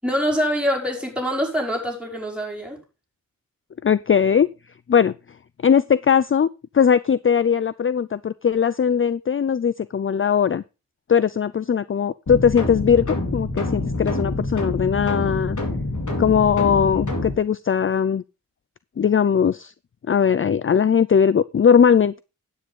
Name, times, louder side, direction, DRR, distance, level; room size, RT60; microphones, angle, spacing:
voice 1, 0.0-2.8, equal, 5° right, 5.7 m, -24 dB
voice 2, 3.8-4.5 4.9-5.1 5.6-6.5 6.7-10.6 11.1-13.1 13.3-15.6 16.2-18.2 19.0-19.7 20.1-22.2, left 7 dB, 40° left, 0.5 m, -19 dB
sound 1, 12.3-17.3, left 2 dB, 60° left, 4.1 m, -26 dB
10.0 x 9.3 x 3.7 m
wide cardioid pair, 75°, 34 cm